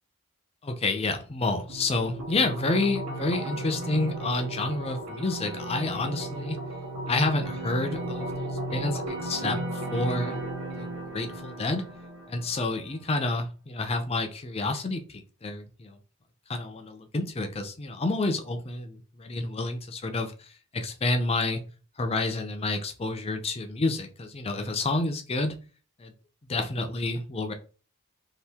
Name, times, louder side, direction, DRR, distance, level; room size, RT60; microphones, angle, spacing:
voice 1, 0.6-6.6 7.1-10.4 10.8-11.9 12.3-16.0 16.5-21.6 22.0-25.5 26.0-26.1 26.5-27.5, left 2 dB, 25° left, 6 dB, 0.4 m, -29 dB
sound 1, 1.7-12.7, right 1 dB, 85° right, 1.1 m, -35 dB
2.8 x 2.5 x 3.4 m, 0.36 s
head